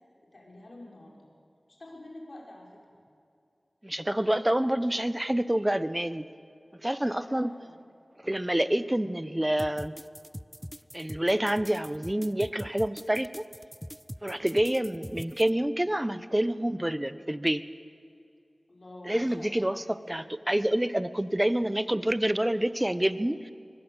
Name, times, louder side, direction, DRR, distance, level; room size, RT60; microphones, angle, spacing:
voice 1, 0.3-1.3 1.7-3.0 7.0-7.7 18.7-20.3 21.1-21.4, left 1 dB, 65° left, -1 dB, 6.1 m, -48 dB
voice 2, 3.8-6.3 6.8-7.5 8.2-9.9 10.9-13.4 14.2-17.6 19.0-23.5, right 1 dB, 20° right, 14 dB, 1.0 m, -27 dB
sound 1, 9.6-15.5, equal, ahead, 0.5 m, -42 dB
23.5 x 21.0 x 8.2 m, 2.4 s
wide cardioid pair, 40°, 0 cm